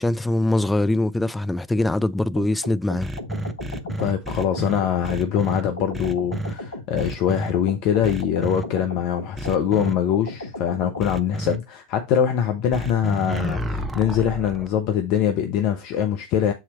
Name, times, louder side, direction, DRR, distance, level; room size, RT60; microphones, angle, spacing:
voice 1, 0.0-3.1, left 1 dB, 10° left, 0.4 m, -22 dB
sound 1, 2.4-11.1, left 2 dB, 85° left, 1.5 m, -36 dB
sound 2, 3.0-5.6 5.9-6.5 7.0-7.5 8.0-8.6 9.4-9.9 11.0-11.6 12.7-14.7, right 1 dB, 10° right, 0.9 m, -30 dB
voice 2, 4.0-16.5, left 9 dB, 50° left, 1.0 m, -23 dB
7.3 x 4.4 x 4.3 m
figure-of-eight pair, 85°, 0 cm